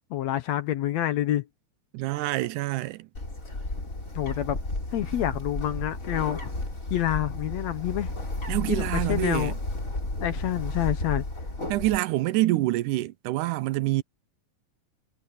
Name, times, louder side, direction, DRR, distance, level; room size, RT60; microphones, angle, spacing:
voice 1, 0.1-1.5 4.2-4.6 4.9-6.5 6.9-8.1 8.7-9.5 10.2-11.2, left 13 dB, 70° left, 1.9 m, -27 dB
voice 2, 1.9-3.1 8.5-9.6 11.7-14.0, right 17 dB, 85° right, 2.2 m, -26 dB
Bird, 3.1-12.0, left 2 dB, 25° left, 5.0 m, -32 dB
omnidirectional pair, 3.6 m